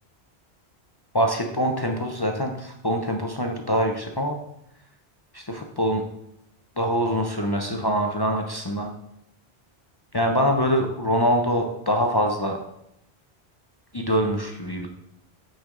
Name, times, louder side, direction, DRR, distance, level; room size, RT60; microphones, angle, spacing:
voice 1, 1.1-4.4 5.3-6.0 6.8-8.9 10.1-12.6 13.9-14.9, equal, 30° left, 2 dB, 0.5 m, -24 dB
6.0 x 5.7 x 3.7 m, 0.79 s
omnidirectional pair, 1.1 m